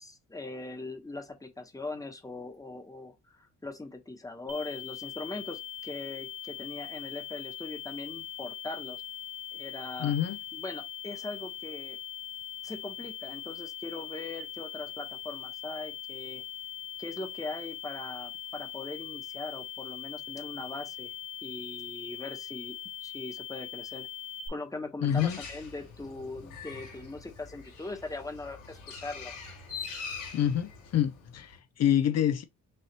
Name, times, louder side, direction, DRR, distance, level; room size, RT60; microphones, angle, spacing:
voice 1, 0.0-9.0 9.5-10.1 10.5-12.0 12.6-16.4 17.0-21.1 21.4-24.1 24.5-29.4, left 2 dB, 10° left, 1.1 m, -40 dB
sound 1, 4.5-24.5, left 11 dB, 60° right, 1.5 m, -41 dB
voice 2, 10.0-10.4 25.0-25.4 30.3-32.4, left 10 dB, 60° left, 0.6 m, -27 dB
Bird, 25.1-31.6, left 5 dB, 85° left, 3.3 m, -44 dB
6.3 x 2.7 x 2.9 m
cardioid pair, 90°, 30 cm